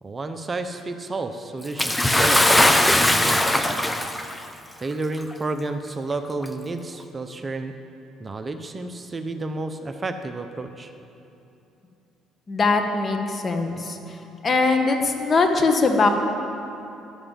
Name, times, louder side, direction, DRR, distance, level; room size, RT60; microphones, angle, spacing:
voice 1, 0.0-3.4 4.8-7.7 8.2-10.9, right 3 dB, 30° right, 7 dB, 0.9 m, -31 dB
Bathtub (filling or washing) / Splash splatter, 1.8-4.4 5.3-5.4 6.4-6.5, left 1 dB, 10° left, 0.9 m, -19 dB
voice 2, 12.5-14.0 14.4-16.1, left 3 dB, 35° left, 5 dB, 1.7 m, -21 dB
13.0 x 11.0 x 7.4 m, 2.8 s
supercardioid pair, 80°, 0 cm